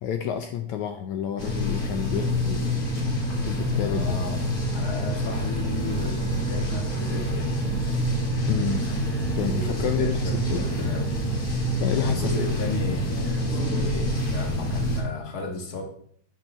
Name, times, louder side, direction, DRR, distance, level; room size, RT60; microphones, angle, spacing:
voice 1, 0.0-2.8 3.4-4.2 8.5-8.8 9.3-10.7 11.8-12.4, left 9 dB, 75° left, 6 dB, 1.7 m, -29 dB
sound 1, 1.4-15.0, equal, 35° left, 1.8 m, -26 dB
voice 2, 3.8-4.4 4.7-7.6 9.3-11.2 11.9-15.8, left 3 dB, 60° left, 3 dB, 1.0 m, -34 dB
9.3 x 7.5 x 5.5 m, 0.62 s
omnidirectional pair, 4.1 m